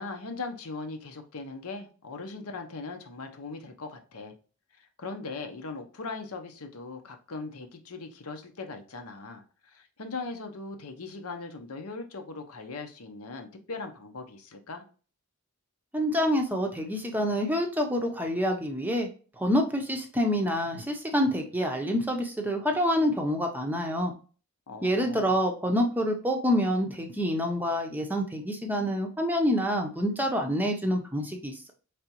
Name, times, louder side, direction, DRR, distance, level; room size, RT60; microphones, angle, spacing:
voice 1, 0.0-4.3 4.8-14.8 24.7-25.4, left 3 dB, 80° left, 5 dB, 0.8 m, -39 dB
voice 2, 15.9-19.1 19.4-24.1 24.8-31.7, equal, 10° right, 2 dB, 0.6 m, -27 dB
5.0 x 3.4 x 2.9 m, 0.38 s
head